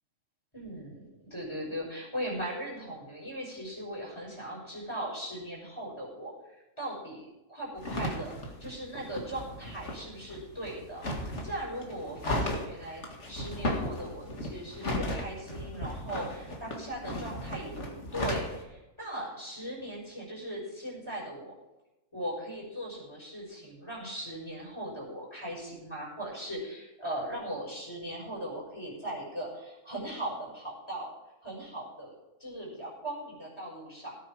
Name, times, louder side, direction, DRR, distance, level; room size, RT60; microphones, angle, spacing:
voice 1, 0.5-21.5 22.1-31.1 31.4-32.1 32.4-34.1, right 1 dB, 15° left, -3 dB, 5.9 m, -39 dB
sound 1, 7.8-18.6, left 1 dB, 50° left, 2.4 m, -36 dB
17.5 x 9.1 x 5.0 m, 1.0 s
omnidirectional pair, 1.6 m